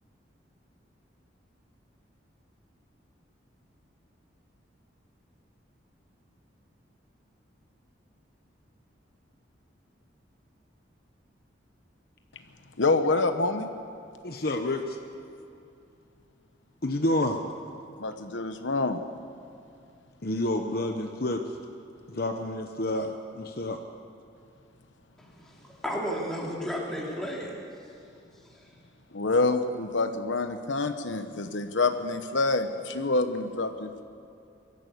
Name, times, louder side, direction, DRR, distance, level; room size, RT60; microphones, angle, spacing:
voice 1, 12.8-13.7 18.0-19.0 29.1-34.0, left 3 dB, 80° left, 8 dB, 1.0 m, -27 dB
voice 2, 14.2-15.0 16.8-17.4 20.2-21.6 22.1-23.8, left 1 dB, 50° left, 4 dB, 1.0 m, -29 dB
voice 3, 25.2-27.5, equal, ahead, -4 dB, 3.2 m, -33 dB
23.0 x 14.0 x 8.4 m, 2.6 s
head